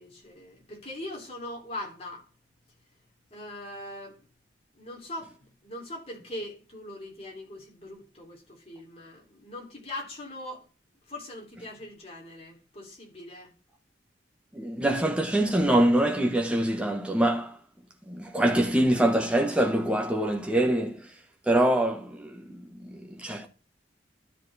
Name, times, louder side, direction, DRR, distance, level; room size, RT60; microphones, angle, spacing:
voice 1, 0.0-2.2 3.3-4.2 4.7-10.6 11.1-13.5, left 1 dB, 35° left, 3.4 m, -41 dB
voice 2, 14.5-17.6 18.1-21.1 21.5-23.5, right 1 dB, 5° right, 1.3 m, -24 dB
12.5 x 4.4 x 4.2 m
head